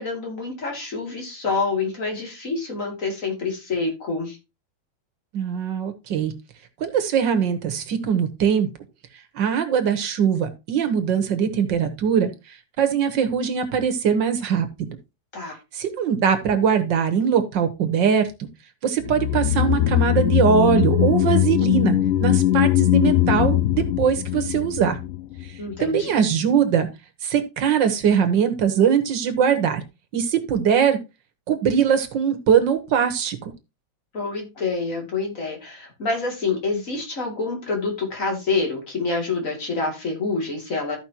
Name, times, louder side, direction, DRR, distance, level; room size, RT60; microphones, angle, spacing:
voice 1, 0.0-4.4 15.3-15.6 25.6-26.2 34.1-41.0, left 3 dB, 40° left, 1 dB, 2.9 m, -27 dB
voice 2, 5.3-6.3 6.8-8.7 9.3-15.0 15.7-18.3 18.8-25.0 25.8-26.9 27.2-29.8 30.1-31.0 31.5-33.5, right 7 dB, 65° right, 8 dB, 1.8 m, -21 dB
sound 1, 19.1-25.5 25.7-25.8, left 13 dB, 80° left, 0.7 m, -20 dB
14.0 x 5.3 x 2.9 m, 0.26 s
omnidirectional pair, 2.2 m